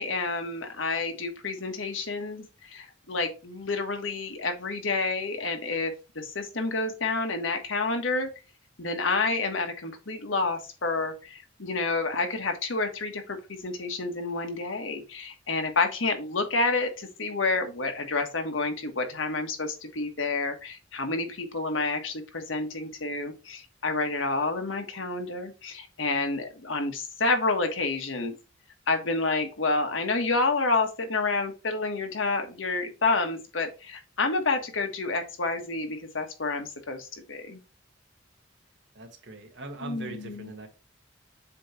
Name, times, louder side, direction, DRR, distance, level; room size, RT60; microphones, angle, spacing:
voice 1, 0.0-8.3 8.8-28.4 28.9-37.6 39.8-40.5, left 3 dB, 85° left, 1.4 m, -29 dB
voice 2, 38.9-40.7, right 2 dB, 60° right, 1.4 m, -41 dB
7.5 x 3.1 x 4.3 m
head